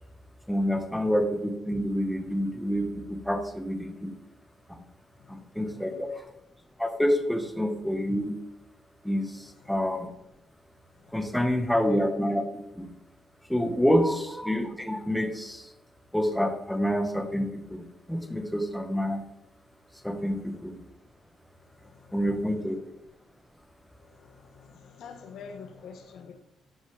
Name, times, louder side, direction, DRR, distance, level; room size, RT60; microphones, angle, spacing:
voice 1, 0.5-4.1 4.7-4.8 5.3-6.1 6.8-8.4 9.0-10.1 11.1-12.9 13.5-15.7 16.1-19.2 20.0-20.8 22.1-22.8, equal, 5° left, 5 dB, 1.3 m, -28 dB
voice 2, 5.2-6.1 9.4-9.7 10.9-11.7 21.6-22.8 24.0-26.4, left 6 dB, 75° left, 7 dB, 1.0 m, -49 dB
13.0 x 5.2 x 3.4 m, 0.83 s
cardioid pair, 90°, 0 cm